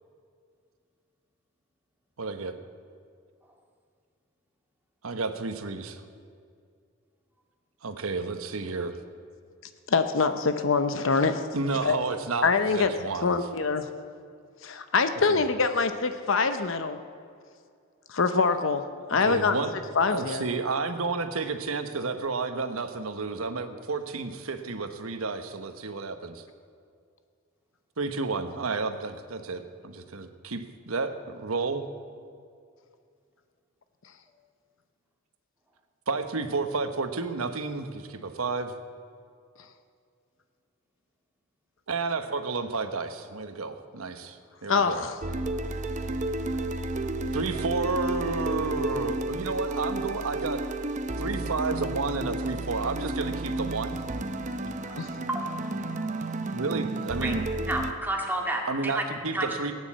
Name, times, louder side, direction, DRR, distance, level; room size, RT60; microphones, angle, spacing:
voice 1, 2.2-2.6 5.0-6.0 7.8-8.9 11.5-13.4 15.3-15.4 19.2-19.7 20.1-26.4 28.0-31.9 36.1-38.7 41.9-44.4 44.6-45.0 47.3-50.6 51.2-54.0 56.5-57.4 58.7-59.7, right 3 dB, 90° right, 8 dB, 1.1 m, -31 dB
voice 2, 9.9-11.5 11.8-12.0 12.4-12.9 13.2-13.9 14.6-17.0 18.1-18.8 19.1-19.6 20.0-20.4 44.7-45.2 55.0-55.1, left 4 dB, 65° left, 9 dB, 0.7 m, -24 dB
sound 1, 45.2-57.9, right 2 dB, 35° right, 0.7 m, -32 dB
voice 3, 55.3-55.7 57.2-57.3 57.7-59.0 59.3-59.5, right 1 dB, 10° right, 0 dB, 1.9 m, -30 dB
17.5 x 9.6 x 7.4 m, 2.3 s
head